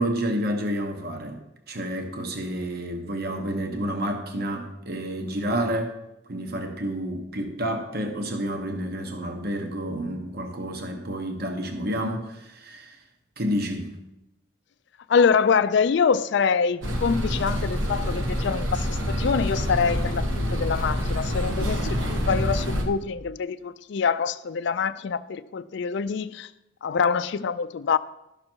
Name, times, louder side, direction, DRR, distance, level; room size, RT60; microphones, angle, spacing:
voice 1, 0.0-1.4 1.7-5.9 6.3-13.0 13.4-13.9, right 1 dB, 50° right, 1.1 m, -29 dB
voice 2, 15.1-26.5 26.8-28.0, left 6 dB, 60° left, 0.4 m, -25 dB
sound 1, 16.8-22.8, equal, 75° right, 1.4 m, -26 dB
12.0 x 6.4 x 4.5 m
head